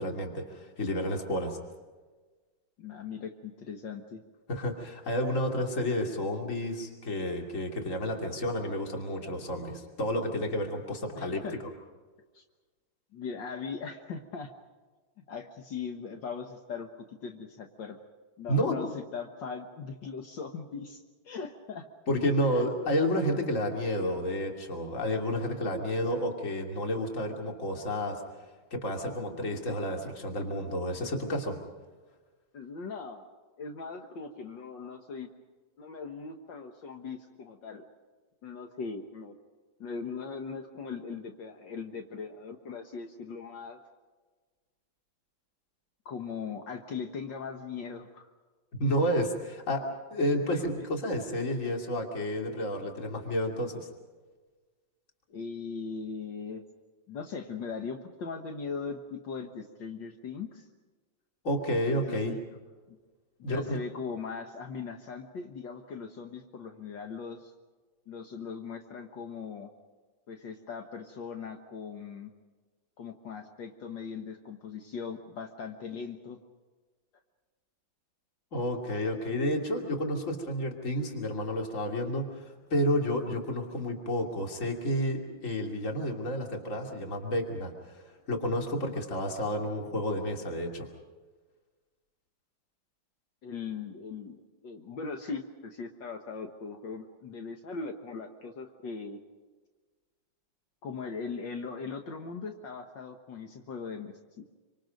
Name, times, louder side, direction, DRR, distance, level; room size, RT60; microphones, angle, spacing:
voice 1, 0.0-1.6 4.5-11.4 18.5-18.9 22.1-28.2 28.7-31.6 48.8-49.8 50.1-53.9 61.4-62.4 63.4-63.8 78.5-90.9, equal, 40° left, 2 dB, 2.9 m, -30 dB
voice 2, 2.8-4.2 11.2-11.6 12.3-12.4 13.1-14.5 15.3-18.0 18.4-21.9 22.5-22.7 23.3-23.4 32.5-33.3 33.6-35.3 35.8-37.8 38.4-39.3 39.8-43.8 46.1-48.3 50.5-50.9 55.3-56.6 57.1-60.7 61.9-62.4 62.9-63.0 63.5-67.5 68.1-69.7 70.3-72.3 73.0-76.4 93.4-99.2 100.8-104.5, left 5 dB, 70° left, 4 dB, 1.9 m, -39 dB
26.5 x 25.5 x 5.3 m, 1.3 s
omnidirectional pair, 2.1 m